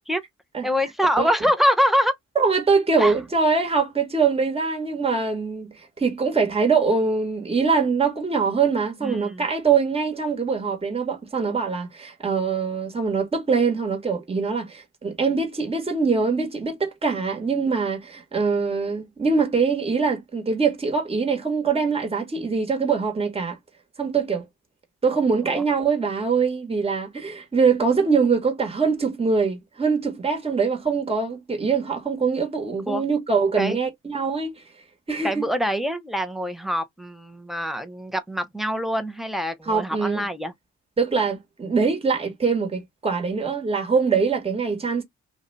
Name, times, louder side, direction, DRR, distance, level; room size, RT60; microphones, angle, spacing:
voice 1, 0.6-2.1 3.0-3.1 9.0-9.4 25.5-25.6 32.9-33.0 33.6-33.8 35.2-40.5, equal, ahead, 0.6 m, -24 dB
voice 2, 2.3-23.6 24.0-24.4 25.0-34.6 35.1-35.5 39.7-40.3 41.0-45.0, right 5 dB, 20° right, 1.2 m, -23 dB
2.6 x 2.2 x 3.8 m
cardioid pair, 90°, 30 cm